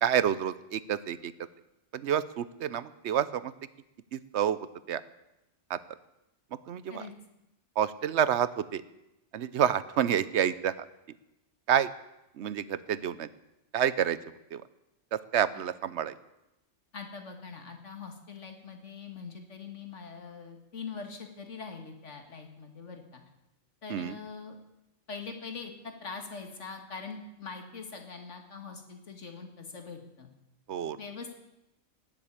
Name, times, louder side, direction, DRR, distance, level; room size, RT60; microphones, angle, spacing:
voice 1, 0.0-1.3 1.9-3.5 4.1-4.6 4.9-5.0 5.7-5.8 6.7-7.1 7.8-8.8 9.3-10.9 11.7-11.9 12.4-13.3 13.7-14.2 14.5-14.6 15.1-16.2 23.9-24.2 30.7-31.0, right 9 dB, 70° right, 16 dB, 1.0 m, -28 dB
voice 2, 16.9-23.2 23.8-24.5 25.1-25.7 26.0-30.3 31.0-31.3, left 5 dB, 90° left, 4 dB, 2.3 m, -43 dB
18.5 x 7.6 x 8.7 m, 0.93 s
omnidirectional pair, 1.2 m